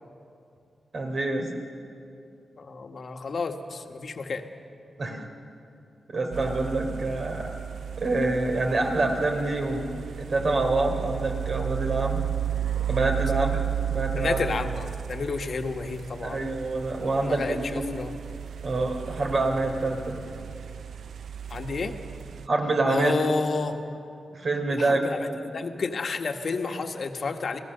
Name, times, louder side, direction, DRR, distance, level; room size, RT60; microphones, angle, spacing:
voice 1, 0.9-1.5 5.0-5.2 6.1-7.5 8.0-9.9 10.2-12.2 12.9-13.6 13.9-14.4 16.2-17.6 18.6-20.2 22.5-23.1 24.3-25.0 25.3-25.4, right 2 dB, 55° right, 2 dB, 3.5 m, -26 dB
voice 2, 2.6-4.4 14.2-16.4 17.2-18.1 21.5-21.9 22.8-23.8 24.7-27.6, left 4 dB, 60° left, 5 dB, 1.5 m, -30 dB
sound 1, 6.3-22.5, right 10 dB, 75° right, 0.5 m, -34 dB
27.5 x 17.0 x 6.7 m, 2.6 s
cardioid pair, 75°, 0 cm